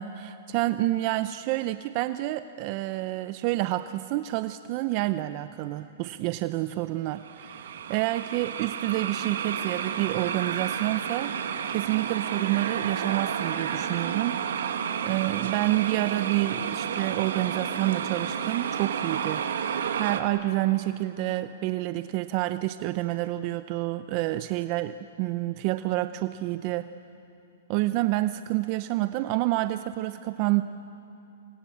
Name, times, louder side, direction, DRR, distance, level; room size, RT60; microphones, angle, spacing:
voice 1, 0.0-11.4 11.7-14.6 15.0-19.7 19.9-26.9 27.7-30.6, right 16 dB, 40° right, 12 dB, 0.7 m, -28 dB
sound 1, 7.2-20.2, right 8 dB, 75° right, 1.9 m, -31 dB
28.0 x 22.5 x 8.6 m, 2.8 s
hypercardioid pair, 140°, 0 cm